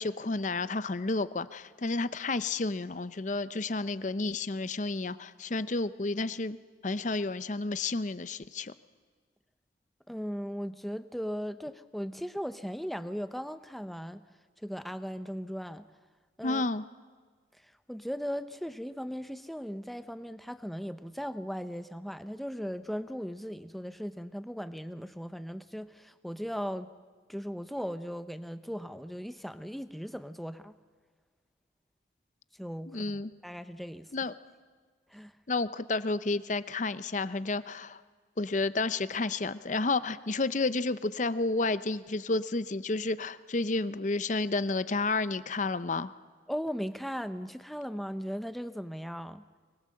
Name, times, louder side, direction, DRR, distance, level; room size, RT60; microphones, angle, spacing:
voice 1, 0.0-6.6 6.8-8.7 16.4-16.8 32.9-33.3 34.1-34.3 35.5-38.0 38.4-46.1, left 3 dB, 40° left, 14 dB, 0.7 m, -31 dB
voice 2, 10.1-14.2 14.6-15.9 16.4-16.6 17.6-26.9 27.3-30.7 32.6-34.1 35.1-35.3 46.5-49.4, equal, ahead, 10 dB, 0.7 m, -38 dB
24.5 x 21.0 x 7.7 m, 1.5 s
head